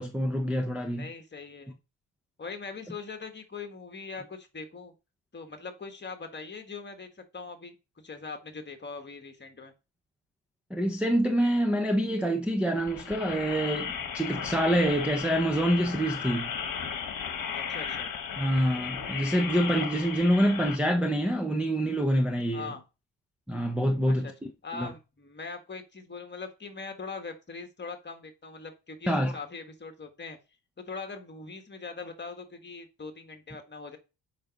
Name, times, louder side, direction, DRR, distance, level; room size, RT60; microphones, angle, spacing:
voice 1, 0.0-1.1 10.7-16.5 18.4-22.7 23.5-24.3 24.8-24.9 29.1-29.3, equal, 5° right, 0.8 m, -26 dB
voice 2, 1.0-1.8 2.4-4.9 5.3-7.7 8.0-9.7 17.5-18.1 22.5-22.8 24.1-24.3 24.6-30.4 30.8-34.0, left 4 dB, 25° left, 1.6 m, -41 dB
sound 1, 12.8-20.8, left 7 dB, 50° left, 1.4 m, -35 dB
7.7 x 5.4 x 5.2 m
cardioid pair, 145°, 43 cm